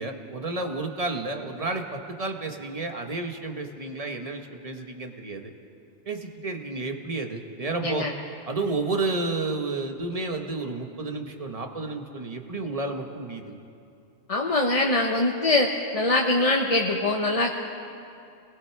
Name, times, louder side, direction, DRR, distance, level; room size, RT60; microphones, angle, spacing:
voice 1, 0.0-5.5 6.0-8.1 8.5-13.5, right 3 dB, 30° right, 4 dB, 1.5 m, -31 dB
voice 2, 14.3-17.6, left 2 dB, 30° left, 0 dB, 1.1 m, -23 dB
29.0 x 20.5 x 4.7 m, 2.6 s
omnidirectional pair, 1.2 m